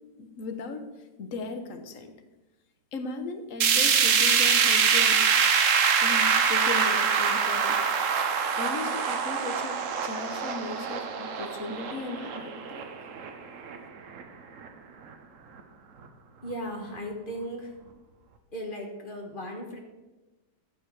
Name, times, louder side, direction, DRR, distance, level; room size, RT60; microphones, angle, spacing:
voice 1, 0.2-0.8 1.2-2.1 2.9-5.2 6.0-7.8 8.6-12.8, left 4 dB, 50° left, 7 dB, 1.3 m, -37 dB
sound 1, 3.6-13.8 14.2-14.3 14.6-14.7 15.6-15.7, right 6 dB, 55° right, 1.1 m, -24 dB
voice 2, 16.4-17.8 18.5-19.8, equal, 30° left, 2 dB, 1.7 m, -36 dB
13.5 x 7.0 x 4.8 m, 1.1 s
omnidirectional pair, 1.9 m